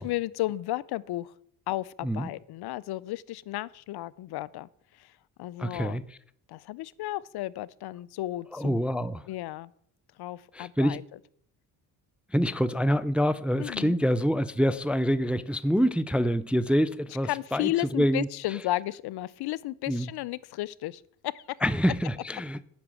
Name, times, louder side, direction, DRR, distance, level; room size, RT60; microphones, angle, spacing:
voice 1, 0.0-1.3 1.7-4.7 4.9-5.1 5.4-6.0 6.5-8.9 9.3-9.7 10.2-11.0 13.6-14.0 17.3-21.4, left 16 dB, 60° left, 0.5 m, -33 dB
voice 2, 5.6-6.0 8.5-9.3 10.5-11.0 12.3-18.6 19.9-20.1 21.6-22.6, equal, 5° right, 0.3 m, -26 dB
8.5 x 6.0 x 7.5 m
supercardioid pair, 65°, 44 cm